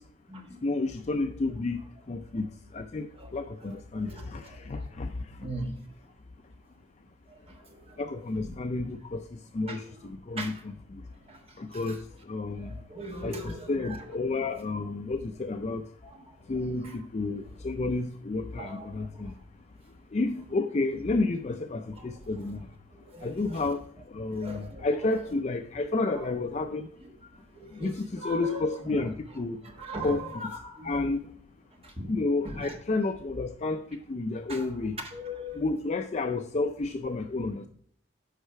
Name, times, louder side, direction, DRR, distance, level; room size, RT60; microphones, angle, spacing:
voice 1, 0.6-1.8 2.1-5.5 8.0-11.0 11.6-12.7 13.2-15.8 16.5-19.3 20.1-22.7 23.2-23.8 24.1-26.9 27.7-29.6 30.0-30.5 30.8-31.2 32.1-35.0 35.5-37.7, left 3 dB, 35° left, 7 dB, 0.4 m, -31 dB
voice 2, 5.4-5.7 7.7-8.0 9.7-9.8 10.3-10.5 11.3-11.4 11.9-12.0 12.6-14.0 18.6-19.1 22.0-22.1 23.1-23.6 24.4-24.8 27.5-28.7 29.8-31.0 31.8-32.1 32.4-32.7 34.5-34.7 35.1-35.6, right 1 dB, 30° right, 2 dB, 1.3 m, -39 dB
8.1 x 5.5 x 4.6 m, 0.63 s
head